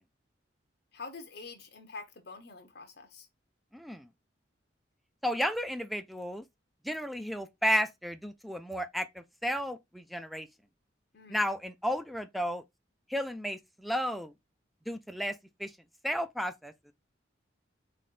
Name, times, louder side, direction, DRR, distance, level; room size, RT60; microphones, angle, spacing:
voice 1, 0.9-3.3 11.1-11.5, left 4 dB, 60° left, 0.9 m, -46 dB
voice 2, 3.7-4.1 5.2-6.4 6.8-10.5 11.3-12.6 13.1-14.3 14.9-15.7 16.0-16.7, equal, ahead, 0.3 m, -33 dB
3.7 x 3.3 x 4.2 m
head